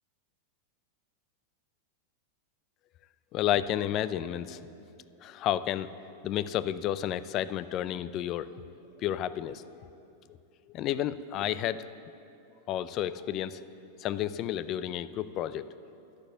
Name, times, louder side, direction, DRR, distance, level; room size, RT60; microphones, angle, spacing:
voice 1, 3.3-4.6 5.2-5.9 6.2-8.5 9.0-9.6 10.7-11.9 12.7-13.6 14.0-15.7, left 11 dB, 40° left, 15 dB, 0.4 m, -31 dB
11.5 x 6.9 x 8.0 m, 2.7 s
hypercardioid pair, 105°, 0 cm